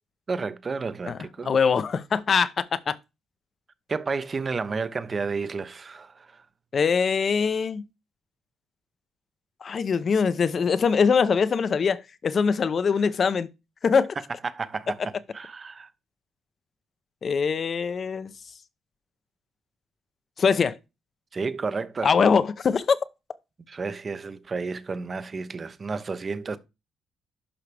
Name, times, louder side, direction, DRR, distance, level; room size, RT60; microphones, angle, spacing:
voice 1, 0.3-1.5 3.9-6.4 14.4-15.9 21.3-22.1 23.7-26.6, right 4 dB, 35° right, 1.0 m, -31 dB
voice 2, 1.1-3.0 6.7-7.8 9.6-13.5 13.8-14.1 17.2-18.3 20.4-20.8 22.0-23.0, left 5 dB, 45° left, 0.9 m, -23 dB
11.0 x 5.7 x 3.5 m
cardioid pair, 90°, 0 cm